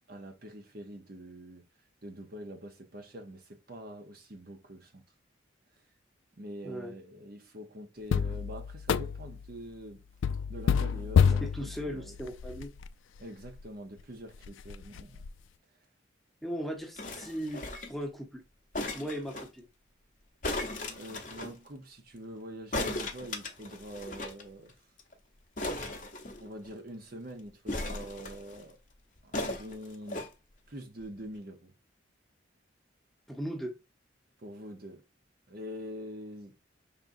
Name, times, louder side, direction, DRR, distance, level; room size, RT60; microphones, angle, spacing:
voice 1, 0.1-1.6 2.0-5.0 6.4-10.0 10.5-12.2 13.2-15.2 21.0-24.7 26.4-28.8 29.2-30.3 30.7-31.7 34.4-35.0 35.5-36.5, equal, 50° right, 0.9 m, -45 dB
voice 2, 6.6-6.9 11.4-12.7 16.4-17.6 17.9-18.4 18.9-19.7 33.3-33.8, equal, ahead, 0.9 m, -37 dB
sound 1, 8.1-9.5 10.2-12.9 13.5-13.6 14.0-14.1 14.4-15.3, left 7 dB, 85° left, 0.3 m, -28 dB
sound 2, 17.0-18.0 18.7-19.5 20.4-21.5 22.7-24.4 24.7-24.8 25.0-25.1 25.6-26.7 27.7-28.6 29.3-30.3 31.0-31.1, left 2 dB, 45° left, 0.8 m, -37 dB
5.3 x 3.6 x 2.6 m
head